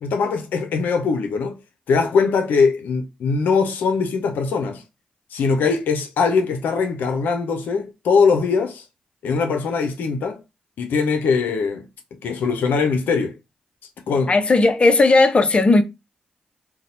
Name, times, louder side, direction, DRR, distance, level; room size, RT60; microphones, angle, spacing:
voice 1, 0.0-1.6 1.9-4.8 5.3-8.8 9.2-10.4 10.8-11.9 12.2-13.4 14.1-14.3, left 5 dB, 85° left, 0.6 m, -21 dB
voice 2, 14.3-15.8, left 3 dB, 40° left, 0.6 m, -15 dB
2.7 x 2.2 x 4.0 m
supercardioid pair, 45°, 3 cm